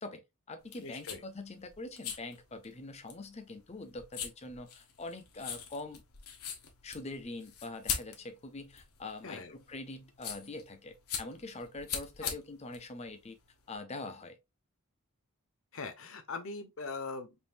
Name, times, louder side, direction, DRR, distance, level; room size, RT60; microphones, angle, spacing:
voice 1, 0.0-6.0 6.8-13.4 13.7-14.4, left 2 dB, 30° left, 0.7 m, -44 dB
sound 1, 0.6-13.7, left 7 dB, 90° left, 1.1 m, -42 dB
voice 2, 0.8-1.2 9.2-9.6 12.2-12.3 15.7-17.3, left 4 dB, 60° left, 0.9 m, -41 dB
5.4 x 2.6 x 2.5 m
head